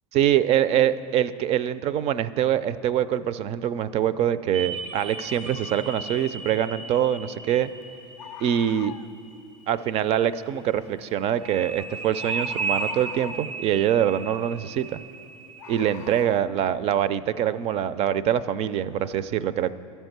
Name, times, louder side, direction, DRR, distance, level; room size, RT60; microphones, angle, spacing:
voice 1, 0.1-7.7 8.4-8.9 9.7-15.0 15.7-19.7, right 10 dB, 40° right, 15 dB, 0.4 m, -24 dB
sound 1, 4.5-10.1 11.4-16.2, right 4 dB, 90° right, 0.9 m, -35 dB
Bird, 6.5-6.6 8.2-9.1 11.4-11.6 12.2-13.6 15.6-16.4, left 12 dB, 75° left, 0.4 m, -41 dB
12.0 x 4.5 x 7.9 m, 2.7 s
supercardioid pair, 105°, 16 cm